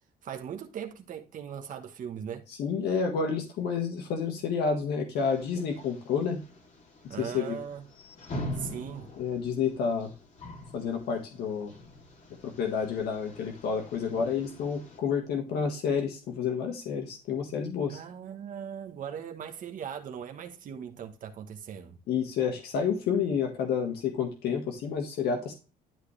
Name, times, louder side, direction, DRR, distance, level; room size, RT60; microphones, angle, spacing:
voice 1, 0.2-2.4 7.1-7.9 8.5-9.1 17.9-22.0, right 8 dB, 50° right, 1.2 m, -39 dB
voice 2, 2.5-6.4 7.0-7.6 9.2-10.1 10.7-11.7 12.4-18.0 22.1-25.5, left 6 dB, 75° left, 1.7 m, -30 dB
sound 1, 5.1-15.0, left 1 dB, 45° left, 3.0 m, -44 dB
12.0 x 4.7 x 3.3 m
cardioid pair, 110°, 17 cm